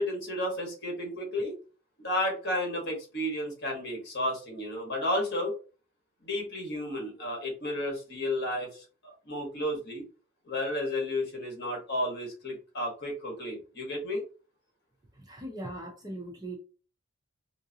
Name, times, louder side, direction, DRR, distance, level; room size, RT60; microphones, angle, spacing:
voice 1, 0.0-1.6 2.0-5.5 6.2-10.0 10.4-14.2, left 1 dB, 50° left, 1 dB, 1.4 m, -32 dB
voice 2, 15.2-16.6, right 1 dB, 20° right, 0 dB, 0.6 m, -40 dB
3.8 x 2.6 x 2.7 m, 0.36 s
head